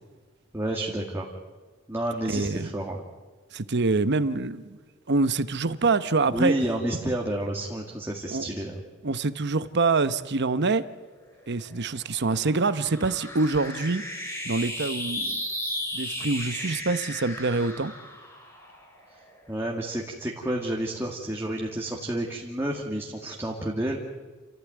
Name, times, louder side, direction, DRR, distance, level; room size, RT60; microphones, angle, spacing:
voice 1, 0.5-1.2 1.9-3.0 6.3-8.8 19.5-24.0, right 1 dB, 10° right, -2 dB, 2.1 m, -30 dB
voice 2, 2.3-2.7 3.5-4.8 5.1-6.5 8.3-8.5 9.0-10.9 11.5-14.0 14.4-15.4 15.9-17.9, right 3 dB, 55° right, 13 dB, 0.9 m, -25 dB
sound 1, 11.2-19.8, left 1 dB, 15° left, 5.6 m, -36 dB
29.0 x 15.0 x 9.3 m, 1.3 s
head